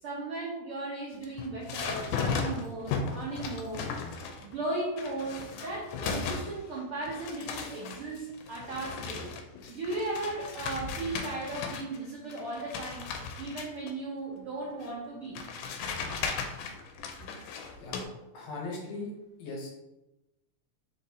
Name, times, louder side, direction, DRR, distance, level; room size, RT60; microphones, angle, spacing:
voice 1, 0.0-3.9 4.4-9.3 9.7-13.1 13.4-15.4, right 2 dB, 90° right, -4 dB, 1.2 m, -36 dB
sound 1, 1.1-4.6 5.0-6.8 7.0-12.0 12.3-13.9 14.8-14.9 15.4-18.0, left 5 dB, 90° left, 2.1 m, -36 dB
voice 2, 18.3-19.1 19.4-19.7, left 3 dB, 70° left, -1 dB, 1.8 m, -38 dB
4.5 x 4.1 x 2.7 m, 0.97 s
omnidirectional pair, 3.5 m